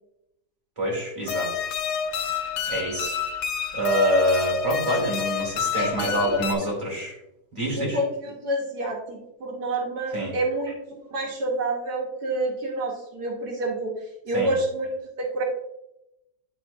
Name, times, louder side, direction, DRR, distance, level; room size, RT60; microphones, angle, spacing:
voice 1, 0.8-1.5 2.7-3.2 3.7-7.2 7.5-8.0 10.1-10.4 14.3-14.5, equal, 20° right, -3 dB, 2.0 m, -26 dB
sound 1, 1.3-6.5, left 7 dB, 75° left, 1.2 m, -28 dB
voice 2, 5.7-6.7 7.8-10.7 11.1-14.9 15.2-15.4, right 1 dB, 70° right, -1 dB, 1.6 m, -28 dB
9.0 x 4.3 x 2.5 m, 0.88 s
omnidirectional pair, 1.7 m